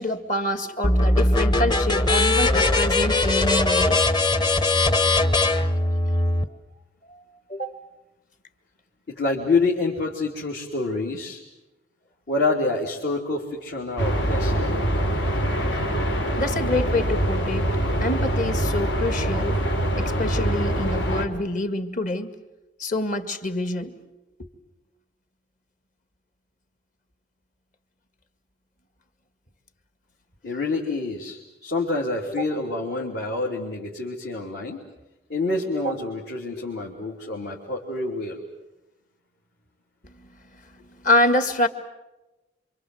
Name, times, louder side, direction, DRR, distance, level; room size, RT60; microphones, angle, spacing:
voice 1, 0.0-4.0 7.1-7.2 7.5-7.8 16.4-17.7 18.0-19.6 20.0-22.3 22.8-23.9 24.4-24.5 35.5-35.9 36.5-36.6 40.2-40.3 40.8-41.7, left 1 dB, 45° left, 9 dB, 2.0 m, -26 dB
sound 1, 0.8-6.4, left 2 dB, 25° left, 1.0 m, -20 dB
voice 2, 9.1-11.4 12.3-14.7 30.4-34.8 35.3-38.4, left 3 dB, 65° left, -2 dB, 3.2 m, -27 dB
sound 2, 14.0-21.2, right 1 dB, 90° left, 3.2 m, -24 dB
27.5 x 25.5 x 7.9 m, 1.0 s
head